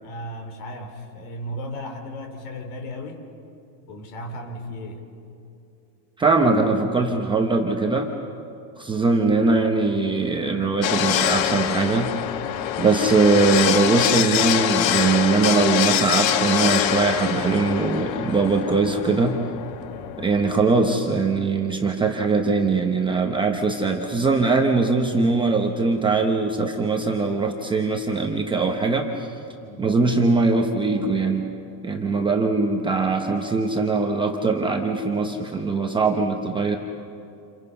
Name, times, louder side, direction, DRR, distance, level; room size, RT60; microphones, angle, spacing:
voice 1, 0.0-3.3 3.9-5.0 12.5-12.8 19.9-20.2 29.6-29.8, equal, 55° left, 5 dB, 3.9 m, -36 dB
voice 2, 6.2-8.1 8.8-12.2 12.8-19.4 20.2-29.3 29.8-31.5 31.8-36.8, right 3 dB, 10° right, 2 dB, 0.8 m, -21 dB
sound 1, 10.8-20.9, left 10 dB, 85° left, 1.4 m, -24 dB
29.5 x 28.5 x 5.5 m, 2.6 s
cardioid pair, 170°, 49 cm